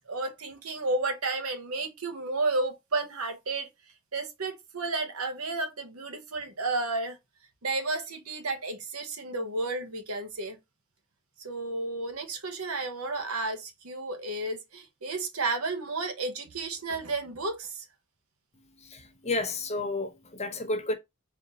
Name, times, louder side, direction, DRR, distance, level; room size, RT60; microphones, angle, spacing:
voice 1, 0.1-3.7 4.1-7.2 7.6-10.6 11.4-17.8, right 3 dB, 85° right, 1.1 m, -32 dB
voice 2, 18.9-20.9, left 2 dB, 30° left, 0.8 m, -31 dB
4.3 x 2.8 x 3.9 m
head